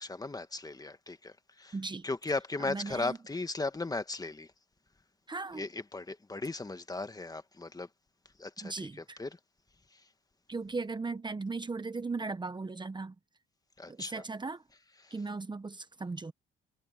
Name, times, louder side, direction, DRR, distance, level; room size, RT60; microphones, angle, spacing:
voice 1, 0.0-1.7 2.0-4.5 5.5-7.9 8.4-8.9 9.2-9.4 13.8-14.2 15.0-15.1, left 3 dB, 20° left, 1.6 m, -37 dB
voice 2, 1.7-2.1 2.6-3.2 5.3-5.7 8.6-9.2 10.5-13.1 13.9-14.6 15.1-16.3, right 3 dB, 20° right, 1.1 m, -37 dB
cardioid pair, 90°, 20 cm